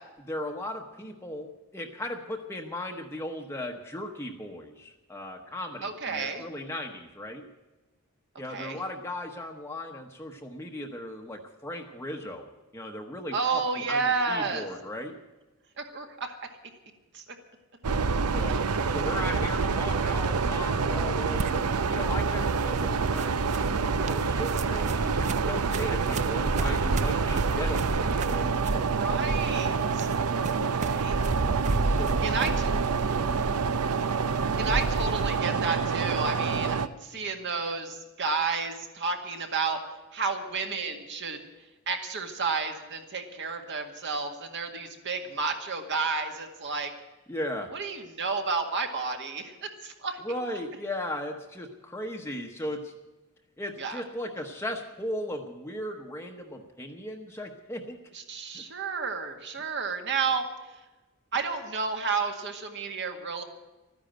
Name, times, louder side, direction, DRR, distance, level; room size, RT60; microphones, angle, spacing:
voice 1, 0.3-7.4 8.4-15.2 18.3-18.6 18.9-28.9 30.3-30.7 31.8-32.5 47.3-47.7 50.2-52.9 53.6-58.0 58.5-58.6, left 1 dB, 10° left, 2 dB, 0.9 m, -37 dB
voice 2, 5.8-6.4 8.5-8.8 13.3-14.7 15.8-16.4 17.1-17.2 28.7-30.1 30.8-31.2 32.2-32.7 34.6-39.8 40.1-41.4 41.9-46.9 47.7-50.2 53.8-54.0 58.1-60.4 61.3-63.4, right 4 dB, 55° right, 4 dB, 1.9 m, -31 dB
sound 1, 17.8-36.9, right 5 dB, 90° right, 0.7 m, -27 dB
sound 2, 21.4-35.4, right 2 dB, 30° right, 0.4 m, -33 dB
13.5 x 10.5 x 8.9 m, 1.1 s
head